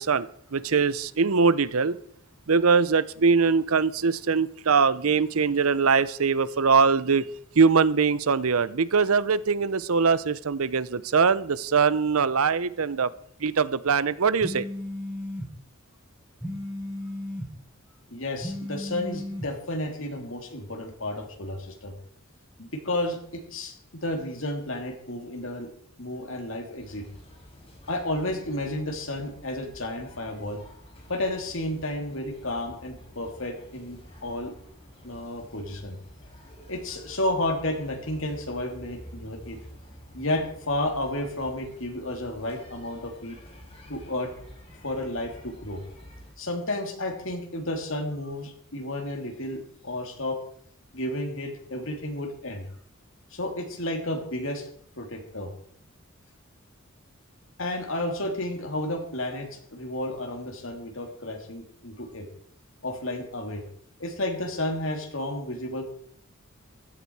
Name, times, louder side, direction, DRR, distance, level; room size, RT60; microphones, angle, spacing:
voice 1, 0.0-2.0 2.5-7.2 7.6-13.1 13.4-14.6, right 5 dB, 90° right, 0.7 m, -22 dB
sound 1, 14.4-15.5 16.4-17.5 18.4-19.5, left 1 dB, 5° right, 7.8 m, -34 dB
voice 2, 18.1-21.9 22.6-23.7 24.0-25.7 26.0-27.0 27.9-30.6 31.1-34.5 35.0-36.0 36.7-39.6 40.1-43.4 43.9-44.3 44.8-45.8 46.4-50.4 50.9-52.7 53.3-54.7 55.0-55.5 57.6-62.2 62.8-63.6 64.0-65.8, left 1 dB, 65° left, 3.2 m, -32 dB
sound 2, 26.8-46.3, equal, 25° left, 5.4 m, -49 dB
15.5 x 12.5 x 4.8 m
head